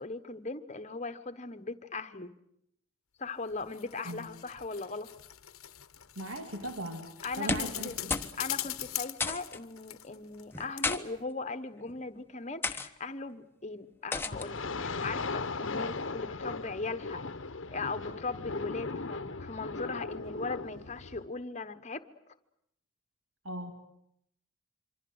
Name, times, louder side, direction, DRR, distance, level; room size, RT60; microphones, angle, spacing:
voice 1, 0.0-2.3 3.2-5.1 7.2-8.0 8.4-17.2 17.7-22.0, left 3 dB, 30° left, 10 dB, 1.1 m, -39 dB
sound 1, 3.5-10.5 10.8-10.9, left 14 dB, 85° left, 1.0 m, -41 dB
voice 2, 6.2-7.1 7.4-8.3 23.4-23.7, right 1 dB, 70° right, 5 dB, 2.5 m, -38 dB
sound 2, 7.3-7.8 8.1-8.4 8.6-8.8 9.2-9.6 10.5-11.0 11.8-12.0 12.6-12.9 14.1-14.5, left 3 dB, 10° left, 1.0 m, -32 dB
sound 3, 14.3-21.3, left 3 dB, 65° left, 1.0 m, -37 dB
26.5 x 25.0 x 7.9 m, 0.75 s
head